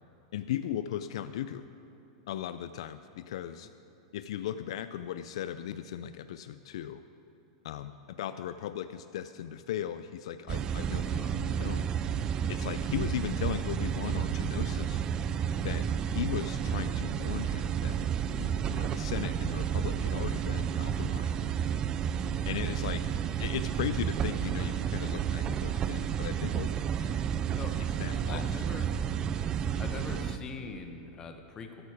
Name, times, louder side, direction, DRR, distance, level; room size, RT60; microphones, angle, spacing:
voice 1, 0.3-1.7 2.3-3.7 4.1-7.0 7.6-11.9 12.5-15.0 15.6-15.9 16.1-18.0 18.4-21.4 22.5-23.0 23.4-27.1 28.0-28.5 29.3-29.4, left 10 dB, 70° left, 12 dB, 0.3 m, -37 dB
sound 1, 10.5-30.4, right 8 dB, 25° right, 0.3 m, -31 dB
voice 2, 11.0-11.4 27.5-27.7 28.1-28.9 29.8-31.8, left 4 dB, 20° left, 6 dB, 0.8 m, -43 dB
13.0 x 6.9 x 4.8 m, 3.0 s
supercardioid pair, 150°, 3 cm